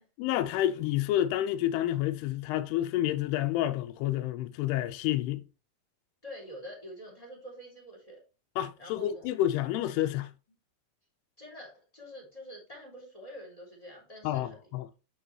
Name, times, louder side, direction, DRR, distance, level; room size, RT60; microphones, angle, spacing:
voice 1, 0.2-5.4 8.6-10.3 14.2-14.9, left 13 dB, 90° left, 2.7 m, -29 dB
voice 2, 6.2-8.2 8.8-9.3 11.4-14.6, equal, 10° left, 2.3 m, -46 dB
10.0 x 4.5 x 3.2 m
omnidirectional pair, 4.6 m